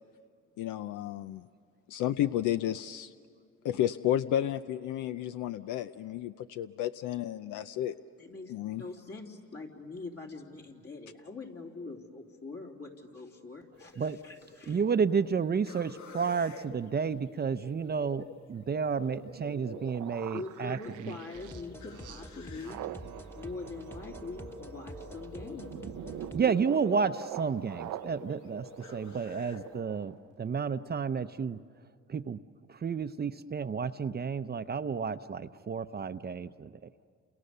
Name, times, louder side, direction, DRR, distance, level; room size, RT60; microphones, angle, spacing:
voice 1, 0.6-1.4 1.9-3.1 3.6-8.0 8.5-8.8, left 12 dB, 85° left, 12 dB, 0.6 m, -32 dB
voice 2, 8.2-14.8 20.3-22.8 23.3-25.8, left 3 dB, 50° left, 0 dB, 3.7 m, -43 dB
sound 1, 13.7-29.8, left 4 dB, 70° left, 1.6 m, -51 dB
voice 3, 14.7-21.1 26.3-31.6 32.1-32.4 32.7-37.1, right 6 dB, 35° right, 11 dB, 0.7 m, -31 dB
sound 2, 19.0-30.3 30.6-30.8, right 12 dB, 90° right, 0.7 m, -44 dB
sound 3, 21.3-26.5, equal, 10° left, 1.3 m, -47 dB
30.0 x 28.5 x 6.8 m, 2.2 s
cardioid pair, 90°, 30 cm